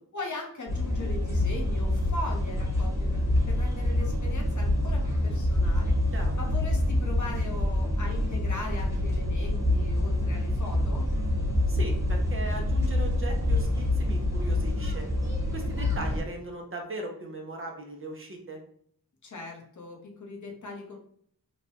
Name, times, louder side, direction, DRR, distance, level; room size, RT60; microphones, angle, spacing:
voice 1, 0.1-5.9 6.3-11.1 19.2-21.0, left 2 dB, 55° left, 0 dB, 0.8 m, -39 dB
sound 1, 0.7-16.2, left 1 dB, 10° right, 1.0 m, -26 dB
voice 2, 11.7-15.1 15.5-18.6, right 2 dB, 35° right, 1 dB, 0.6 m, -38 dB
3.1 x 2.2 x 2.8 m, 0.63 s
wide cardioid pair, 100°, 37 cm